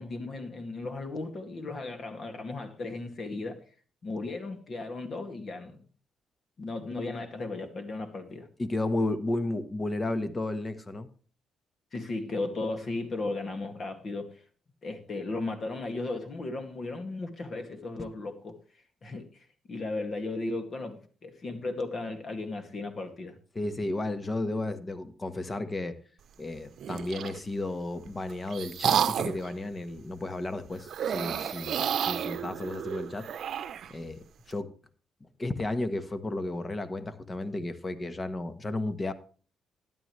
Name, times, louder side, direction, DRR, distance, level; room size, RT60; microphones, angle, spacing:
voice 1, 0.0-3.6 4.0-5.8 6.6-8.5 11.9-14.4 14.8-18.6 19.0-23.4, left 2 dB, 45° left, 2.2 m, -36 dB
voice 2, 8.6-11.1 23.5-26.0 26.4-33.3 33.9-34.7 35.4-39.1, left 2 dB, 25° left, 1.3 m, -33 dB
sound 1, 26.8-27.4 28.1-29.5 30.9-33.9, right 9 dB, 65° right, 0.8 m, -31 dB
13.0 x 10.5 x 3.2 m
cardioid pair, 90°, 0 cm